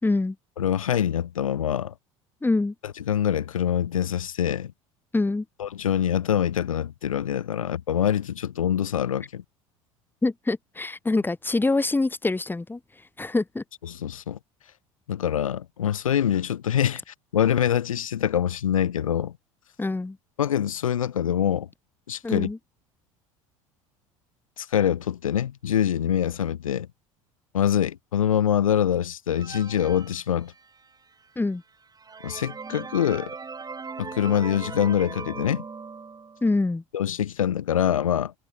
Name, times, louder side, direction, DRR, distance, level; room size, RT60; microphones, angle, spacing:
voice 1, 0.0-0.3 2.4-2.7 5.1-5.4 10.2-12.8 13.2-13.6 19.8-20.2 22.2-22.6 31.4-31.6 36.4-36.8, left 2 dB, 10° left, 2.6 m, -25 dB
voice 2, 0.6-1.9 2.8-4.7 5.6-9.4 13.8-14.4 15.1-19.3 20.4-21.7 22.1-22.5 24.6-26.9 27.5-30.5 32.2-33.3 34.0-35.6 36.9-38.3, left 9 dB, 80° left, 2.1 m, -25 dB
sound 1, 29.3-30.9 31.5-31.6 31.9-36.5, right 5 dB, 20° right, 4.3 m, -39 dB
figure-of-eight pair, 70°, 17 cm